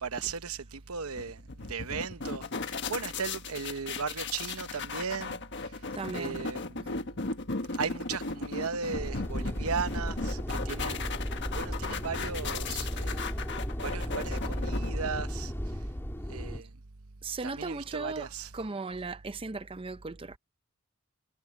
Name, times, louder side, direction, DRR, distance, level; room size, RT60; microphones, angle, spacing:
voice 1, 0.0-1.4 1.7-5.7 6.1-7.1 7.7-13.3 13.8-15.5 16.3-16.7 17.4-18.5, right 5 dB, 85° right, 1.0 m, -37 dB
sound 1, 1.2-15.5, left 4 dB, 55° left, 1.5 m, -37 dB
voice 2, 5.9-6.4 17.2-20.4, right 3 dB, 25° right, 0.5 m, -37 dB
sound 2, 8.9-16.6, equal, 10° left, 3.3 m, -35 dB
head